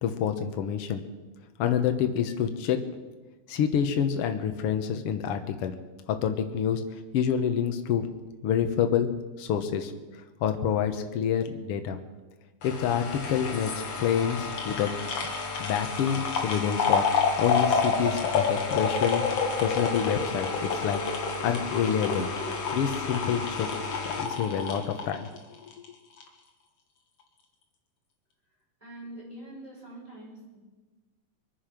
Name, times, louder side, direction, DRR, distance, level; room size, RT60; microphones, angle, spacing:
voice 1, 0.0-1.0 1.6-2.8 3.5-5.7 6.1-6.8 7.1-8.1 8.4-9.1 9.4-9.9 10.4-12.0 12.6-13.7 14.0-14.9 15.6-17.0 17.4-19.3 19.6-21.0 21.4-22.3 22.7-23.7 24.0-25.3, left 8 dB, 75° left, 6 dB, 1.3 m, -27 dB
sound 1, 12.6-25.9 26.2-26.3, left 5 dB, 50° left, 2.6 m, -29 dB
voice 2, 28.8-30.6, right 1 dB, 10° right, -6 dB, 6.9 m, -44 dB
23.5 x 10.0 x 5.9 m, 1.2 s
omnidirectional pair, 4.2 m